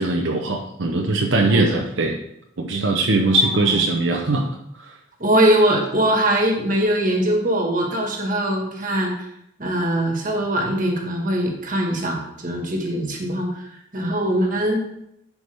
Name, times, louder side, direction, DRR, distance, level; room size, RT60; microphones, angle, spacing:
voice 1, 0.0-2.2 2.6-4.5 4.8-4.9, right 2 dB, 75° right, 1 dB, 0.7 m, -20 dB
voice 2, 5.2-9.3 9.6-13.7 13.9-14.8, right 1 dB, 40° right, 1 dB, 1.6 m, -21 dB
10.5 x 4.7 x 3.5 m, 0.77 s
head